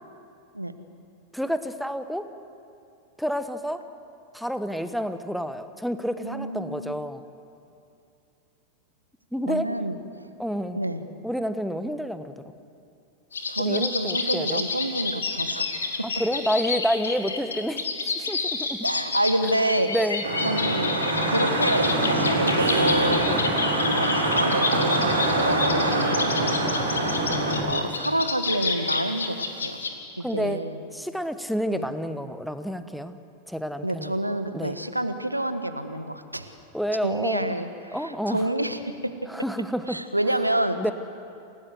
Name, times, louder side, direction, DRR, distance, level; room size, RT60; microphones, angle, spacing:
voice 1, 1.3-2.3 3.2-3.8 4.3-7.2 9.3-9.7 10.4-10.8 11.2-12.3 13.6-14.6 16.0-18.8 19.9-20.2 23.3-23.4 30.2-33.2 33.5-34.2 34.5-34.8 36.7-37.5 37.9-38.4 39.3-40.0 40.8-40.9, equal, ahead, 10 dB, 1.2 m, -29 dB
voice 2, 6.2-6.9 9.5-10.0 10.7-11.0 13.5-15.7 18.8-19.9 20.4-21.0 21.2-23.2 23.5-27.2 27.6-29.8 30.2-30.8 31.7-31.9 33.8-36.5 37.0-39.1 39.9-40.8, right 1 dB, 85° right, 10 dB, 1.2 m, -28 dB
sound 1, 13.3-29.9, left 4 dB, 70° left, 2.2 m, -29 dB
Vehicle horn car horn honking / Traffic noise roadway noise, 20.2-27.6, right 2 dB, 70° right, 4.6 m, -24 dB
28.0 x 18.0 x 8.0 m, 2.5 s
figure-of-eight pair, 90°, 0 cm